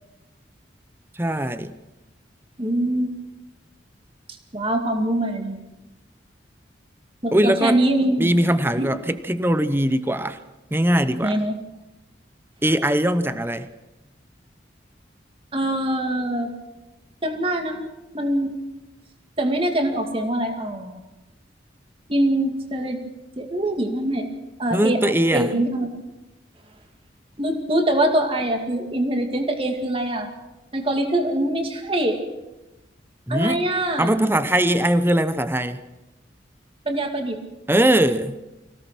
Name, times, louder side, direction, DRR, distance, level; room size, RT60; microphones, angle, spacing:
voice 1, 1.1-1.8 7.3-7.8 8.2-10.4 10.7-11.4 12.6-13.7 24.7-25.5 33.3-33.7 34.0-35.8 37.7-38.4, right 1 dB, 10° right, 12 dB, 0.8 m, -21 dB
voice 2, 2.6-3.1 4.5-5.6 7.2-8.4 8.8-8.9 11.2-11.6 15.5-16.5 17.2-18.5 19.4-21.0 22.1-23.0 23.4-24.3 24.6-25.9 27.4-30.3 30.7-32.2 33.3-34.1 36.9-37.4, right 1 dB, 30° right, 4 dB, 2.3 m, -23 dB
24.5 x 17.0 x 6.2 m, 1.0 s
head